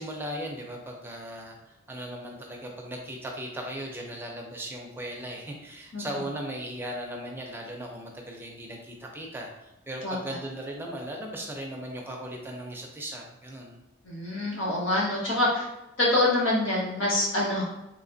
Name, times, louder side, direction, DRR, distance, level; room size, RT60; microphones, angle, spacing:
voice 1, 0.0-13.8, right 1 dB, 10° right, 0 dB, 0.5 m, -37 dB
voice 2, 14.0-15.7 16.0-17.6, left 1 dB, 80° left, -4 dB, 1.1 m, -25 dB
3.3 x 3.2 x 2.6 m, 0.94 s
head